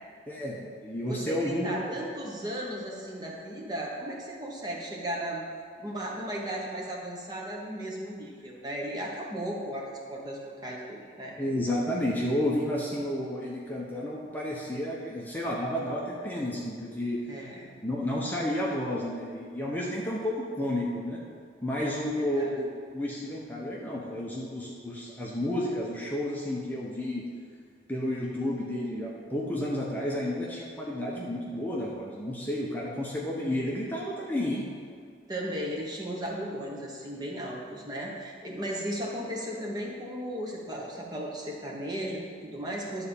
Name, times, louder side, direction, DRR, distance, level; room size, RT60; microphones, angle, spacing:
voice 1, 0.3-1.9 11.4-17.2 17.8-21.2 21.6-27.2 27.9-34.6, left 1 dB, 10° left, -4 dB, 0.9 m, -31 dB
voice 2, 1.1-5.4 5.8-11.3 17.3-17.7 21.8-22.5 35.3-43.1, equal, 25° right, -2 dB, 1.2 m, -36 dB
10.5 x 4.3 x 7.1 m, 2.1 s
head